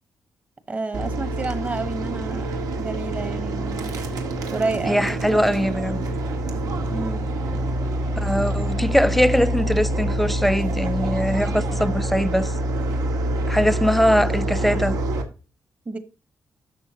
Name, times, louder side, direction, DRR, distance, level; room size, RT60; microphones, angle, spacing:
voice 1, 0.7-3.9 4.5-5.2 6.9-7.2 13.6-13.7 15.9-16.0, right 3 dB, 25° right, 1.1 m, -30 dB
sound 1, 0.9-15.2, right 1 dB, 80° right, 1.8 m, -26 dB
voice 2, 4.9-6.0 8.2-12.5 13.5-15.0, equal, ahead, 0.3 m, -21 dB
11.5 x 7.2 x 2.8 m
wide cardioid pair, 165°, 6 cm